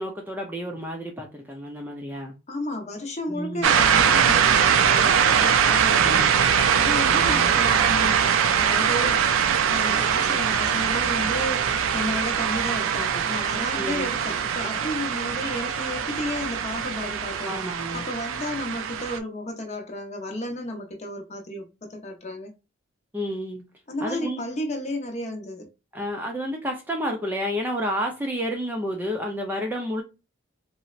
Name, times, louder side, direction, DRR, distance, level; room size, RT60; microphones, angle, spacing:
voice 1, 0.0-2.3 3.3-3.7 5.0-5.5 6.0-6.3 7.1-7.5 10.2-10.3 13.8-14.1 17.5-18.0 23.1-23.6 24.0-24.5 25.9-30.0, equal, 10° right, 0.4 m, -31 dB
voice 2, 2.5-8.2 8.6-9.2 9.7-17.6 17.9-22.5 23.9-25.7, left 1 dB, 35° left, 0.7 m, -33 dB
sound 1, 3.6-19.2, right 7 dB, 80° right, 0.4 m, -22 dB
3.9 x 2.1 x 2.3 m
head